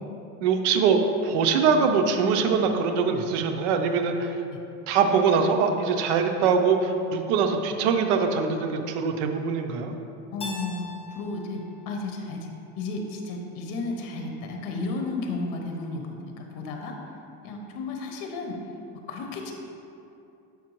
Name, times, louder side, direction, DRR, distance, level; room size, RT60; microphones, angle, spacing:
voice 1, 0.4-4.4 4.9-9.9, right 5 dB, 90° right, 5 dB, 0.7 m, -23 dB
voice 2, 10.3-17.0 17.4-18.6 19.1-19.5, left 3 dB, 70° left, 2 dB, 0.9 m, -33 dB
Keyboard (musical), 10.4-13.2, left 1 dB, 15° left, 0.7 m, -43 dB
7.1 x 5.1 x 3.1 m, 2.7 s
cardioid pair, 120°, 33 cm